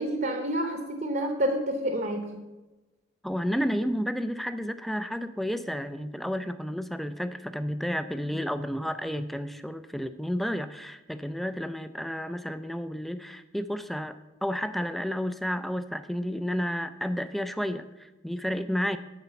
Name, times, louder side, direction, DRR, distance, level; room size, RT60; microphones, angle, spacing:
voice 1, 0.0-2.4, right 1 dB, 45° right, 5 dB, 0.8 m, -29 dB
voice 2, 3.2-19.0, equal, ahead, 11 dB, 0.3 m, -31 dB
9.7 x 4.3 x 6.9 m, 1.1 s
head